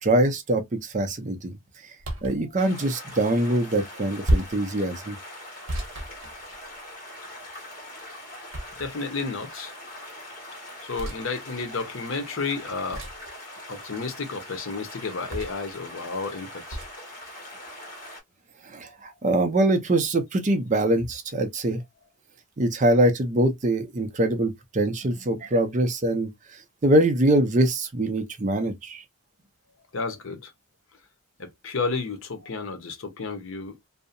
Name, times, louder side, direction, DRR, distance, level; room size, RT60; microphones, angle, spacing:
voice 1, 0.0-1.5 2.2-5.2 18.6-21.8 22.6-29.0, right 1 dB, 35° right, 0.5 m, -23 dB
sound 1, 2.0-2.4 4.2-4.7 5.7-6.9 8.5-9.1 11.0-11.2 12.9-13.3 15.3-15.7 16.7-16.9, right 1 dB, 80° right, 0.8 m, -29 dB
sound 2, 2.6-18.2, left 1 dB, 45° left, 1.4 m, -42 dB
voice 2, 8.8-9.7 10.8-13.1 13.7-16.8 18.8-19.0 29.9-30.5 31.4-33.8, left 4 dB, 80° left, 0.7 m, -32 dB
2.6 x 2.1 x 2.5 m
head